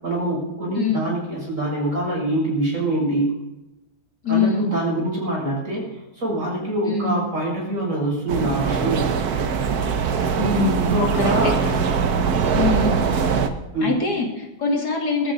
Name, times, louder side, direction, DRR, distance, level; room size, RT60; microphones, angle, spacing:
voice 1, 0.0-3.3 4.3-9.1 10.9-11.6 13.7-13.9, right 1 dB, 50° right, -4 dB, 7.6 m, -24 dB
voice 2, 4.2-4.7 6.9-7.1 10.4-11.3 12.5-13.0 13.8-15.3, left 4 dB, 70° left, 1 dB, 3.2 m, -23 dB
sound 1, 8.3-13.5, right 6 dB, 70° right, 1.6 m, -22 dB
21.5 x 13.5 x 4.0 m, 0.96 s
omnidirectional pair, 1.8 m